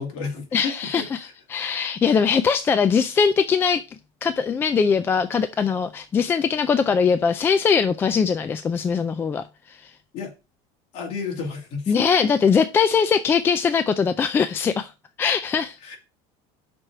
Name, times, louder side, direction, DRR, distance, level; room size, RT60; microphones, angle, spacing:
voice 1, 0.0-1.3 10.1-10.3 10.9-12.1 15.8-16.0, left 5 dB, 45° left, 2.4 m, -32 dB
voice 2, 0.5-3.8 4.2-9.9 11.9-14.9 15.2-16.0, left 6 dB, 15° left, 0.3 m, -21 dB
6.0 x 4.7 x 6.5 m
cardioid pair, 170°, 15 cm